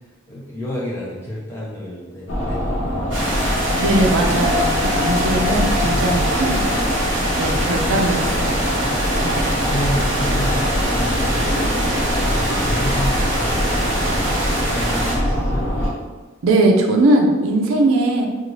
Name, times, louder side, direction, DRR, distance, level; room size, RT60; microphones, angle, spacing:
voice 1, 0.3-3.3 5.8-6.3 9.6-12.1 12.4-14.2 14.6-15.7, left 1 dB, 10° left, -6 dB, 0.4 m, -31 dB
sound 1, 2.3-15.9, equal, 65° left, 0.5 m, -22 dB
sound 2, 3.1-15.2, right 1 dB, 60° right, 0.9 m, -24 dB
voice 2, 3.8-6.6 7.4-8.6 9.2-9.6 16.4-18.3, right 2 dB, 85° right, 2 dB, 0.4 m, -19 dB
2.6 x 2.4 x 3.0 m, 1.3 s
head